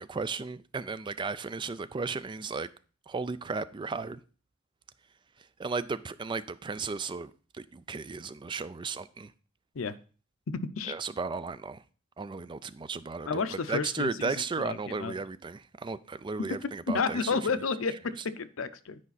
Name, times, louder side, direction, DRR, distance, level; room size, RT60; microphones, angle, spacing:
voice 1, 0.0-2.7 3.1-4.2 5.6-9.3 10.9-11.8 12.2-17.5, right 4 dB, 25° right, 0.3 m, -35 dB
voice 2, 10.5-11.0 13.3-15.1 16.9-19.0, left 4 dB, 85° left, 0.6 m, -31 dB
9.5 x 5.0 x 4.1 m
head